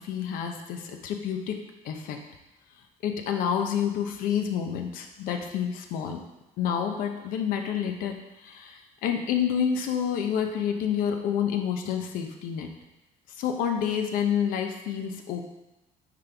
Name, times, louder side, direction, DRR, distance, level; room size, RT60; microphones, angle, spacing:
voice 1, 0.0-1.6 1.8-2.2 3.0-6.2 6.6-8.2 8.4-12.7 13.4-15.4, left 8 dB, 80° left, 5 dB, 0.8 m, -28 dB
9.4 x 3.8 x 3.4 m, 0.99 s
cardioid pair, 110°, 14 cm